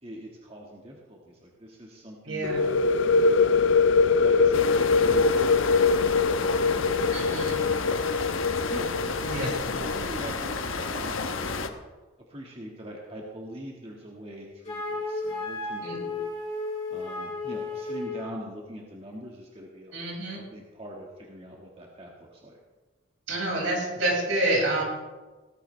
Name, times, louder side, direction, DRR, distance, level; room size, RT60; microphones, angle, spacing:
voice 1, 0.0-2.8 3.4-3.7 4.2-5.9 6.3-7.9 8.7-11.6 12.3-16.3 16.9-20.0 20.4-22.6, equal, 30° right, -2 dB, 1.8 m, -43 dB
voice 2, 2.2-2.7 7.1-7.6 9.2-9.5 15.8-15.9 19.9-20.4 23.3-24.8, right 1 dB, 80° right, -3 dB, 6.1 m, -28 dB
sound 1, 2.4-10.0, left 4 dB, 70° left, 0.4 m, -23 dB
sound 2, 4.5-11.7, left 4 dB, 85° left, 1.1 m, -31 dB
Wind instrument woodwind instrument, 14.6-18.4, left 3 dB, 30° left, 4.9 m, -33 dB
18.0 x 15.0 x 3.3 m, 1.2 s
head